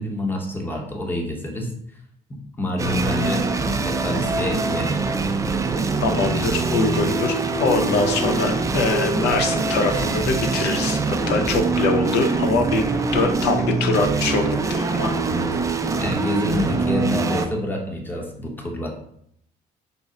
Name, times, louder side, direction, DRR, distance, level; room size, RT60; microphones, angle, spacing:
voice 1, 0.0-1.7 2.3-5.0 15.3-15.6 16.0-18.9, left 1 dB, 10° left, 1 dB, 0.8 m, -27 dB
sound 1, 2.8-17.5, right 4 dB, 20° right, 0.4 m, -23 dB
voice 2, 6.0-12.8 13.1-15.1, left 3 dB, 80° left, 4 dB, 0.6 m, -23 dB
5.3 x 2.0 x 3.7 m, 0.69 s
cardioid pair, 110°, 17 cm